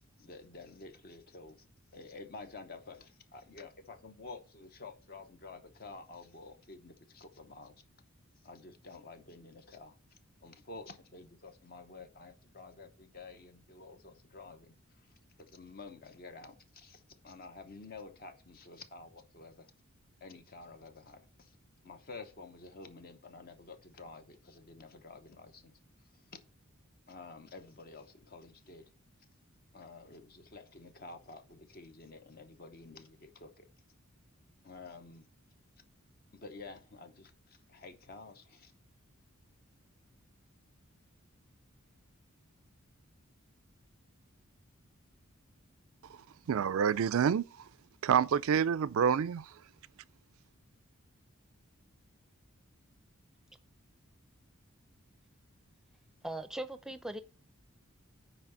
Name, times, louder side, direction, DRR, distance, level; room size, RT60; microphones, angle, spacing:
voice 1, 0.0-1.7 1.9-7.7 8.4-10.0 10.4-15.1 15.4-19.7 20.2-21.6 21.8-25.7 26.1-26.4 27.1-28.9 29.7-33.7 34.6-35.3 36.3-38.7, left 3 dB, 45° left, 0.8 m, -50 dB
voice 2, 46.5-47.5 48.0-49.5, right 7 dB, 70° right, 0.4 m, -27 dB
voice 3, 56.2-57.2, right 1 dB, ahead, 0.6 m, -39 dB
5.9 x 4.8 x 6.6 m
head